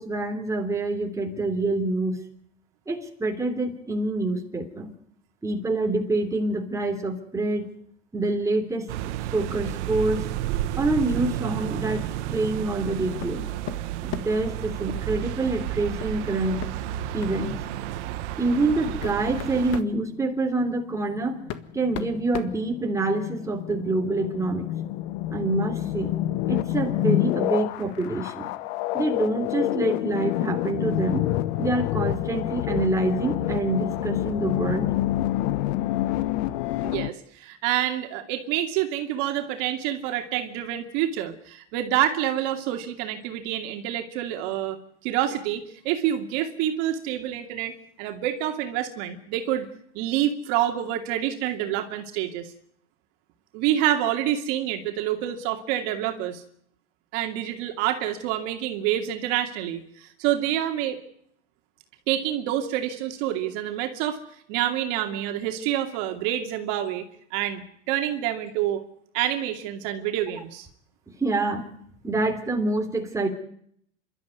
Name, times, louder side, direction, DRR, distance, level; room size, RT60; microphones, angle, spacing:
voice 1, 0.0-2.2 2.9-4.9 5.4-7.7 8.1-8.9 9.3-10.2 10.8-12.0 12.3-13.4 14.0-16.6 17.1-17.6 18.4-21.4 21.7-24.7 25.3-26.1 26.5-28.5 28.9-31.2 31.6-34.9 71.2-71.7 72.0-73.3, right 2 dB, 10° right, 2 dB, 3.2 m, -26 dB
sound 1, 8.9-19.8, right 13 dB, 75° right, 1.6 m, -31 dB
sound 2, 13.2-13.4 13.7-14.5 16.0-16.2 16.6-16.7 17.2-17.4 18.2-18.3 18.8-20.0 21.0-21.1 21.5-23.2, left 11 dB, 45° left, 1.7 m, -36 dB
sound 3, 20.7-37.1, left 14 dB, 60° left, 1.1 m, -28 dB
voice 2, 36.8-44.8 45.0-49.7 49.9-52.5 53.5-56.4 57.1-61.0 62.1-64.2 64.5-68.8 69.1-70.7, right 12 dB, 55° right, 5 dB, 2.6 m, -27 dB
27.0 x 13.0 x 9.6 m, 0.68 s
supercardioid pair, 145°, 36 cm